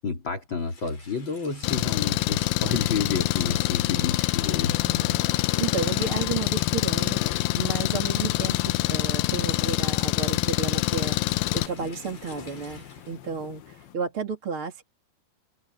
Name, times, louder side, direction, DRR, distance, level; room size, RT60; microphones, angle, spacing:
voice 1, 0.0-4.7, left 5 dB, 30° left, 3.2 m, -30 dB
Rain, 0.6-13.2, left 4 dB, 50° left, 7.8 m, -49 dB
Engine, 1.6-11.7, left 17 dB, 80° left, 2.1 m, -25 dB
sound 1, 4.4-14.0, left 11 dB, 65° left, 3.3 m, -44 dB
voice 2, 4.8-14.8, right 5 dB, 35° right, 3.3 m, -33 dB
omnidirectional pair, 4.8 m